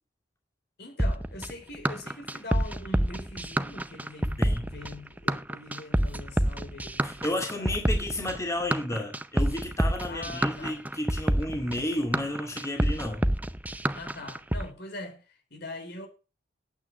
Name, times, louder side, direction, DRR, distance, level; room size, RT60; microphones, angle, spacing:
voice 1, 0.8-7.7 10.0-10.8 13.9-16.1, left 2 dB, 60° left, 3.8 m, -42 dB
sound 1, 1.0-14.6, right 1 dB, 10° right, 0.6 m, -27 dB
voice 2, 7.0-13.3, left 1 dB, 15° left, 2.1 m, -32 dB
8.9 x 8.7 x 6.8 m
head